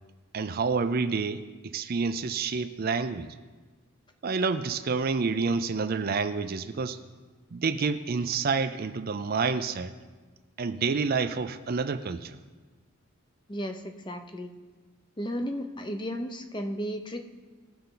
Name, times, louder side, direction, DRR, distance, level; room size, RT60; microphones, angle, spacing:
voice 1, 0.3-3.3 4.2-7.0 7.5-9.9 10.6-12.4, right 4 dB, 45° right, 10 dB, 0.5 m, -28 dB
voice 2, 13.5-14.5 15.2-17.2, equal, 20° left, 6 dB, 0.8 m, -34 dB
20.0 x 6.8 x 3.9 m, 1.3 s
head